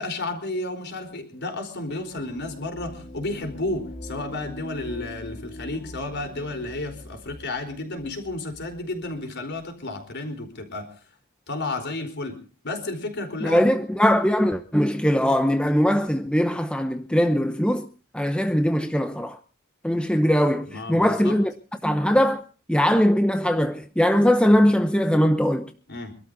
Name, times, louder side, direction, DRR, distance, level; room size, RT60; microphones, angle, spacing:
voice 1, 0.0-10.9 11.5-13.7 20.7-21.4 25.9-26.1, left 2 dB, 50° left, 4.6 m, -32 dB
sound 1, 1.9-9.0, left 1 dB, 30° left, 4.6 m, -42 dB
voice 2, 13.4-17.9 18.1-19.4 19.8-21.5 21.8-22.4 22.7-25.7, equal, 5° left, 0.8 m, -21 dB
26.0 x 13.0 x 4.0 m
head